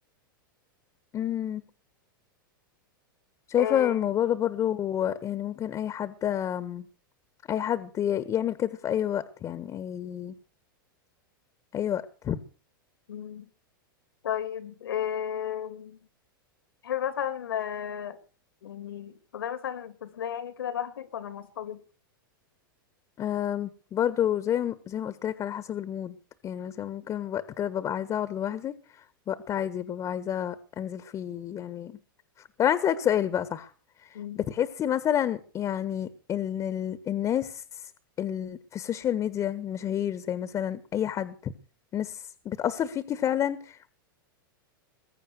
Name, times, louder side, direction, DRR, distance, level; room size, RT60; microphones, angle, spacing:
voice 1, 1.1-1.6 3.5-6.8 7.5-10.3 11.7-12.4 23.2-26.1 26.4-28.7 29.3-31.9 32.6-33.7 34.3-37.8 38.2-41.5 41.9-43.9, left 10 dB, 30° left, 1.4 m, -29 dB
voice 2, 3.5-4.1 13.1-13.5 14.2-16.0 16.8-18.2 18.6-21.8 34.1-34.4, left 9 dB, 85° left, 3.0 m, -33 dB
21.5 x 8.9 x 6.5 m
hypercardioid pair, 125°, 12 cm